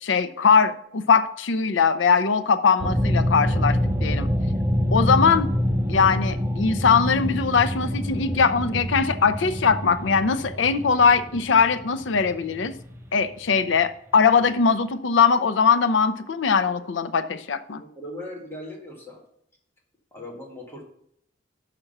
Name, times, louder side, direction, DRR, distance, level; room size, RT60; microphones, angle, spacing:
voice 1, 0.0-4.3 4.9-5.5 5.9-12.7 13.1-17.8, left 5 dB, 80° left, 11 dB, 0.6 m, -21 dB
sound 1, 2.8-13.8, equal, 15° right, 0.6 m, -26 dB
voice 2, 17.8-19.2 20.1-20.8, left 1 dB, 15° left, -2 dB, 1.7 m, -38 dB
6.0 x 5.8 x 6.5 m, 0.71 s
head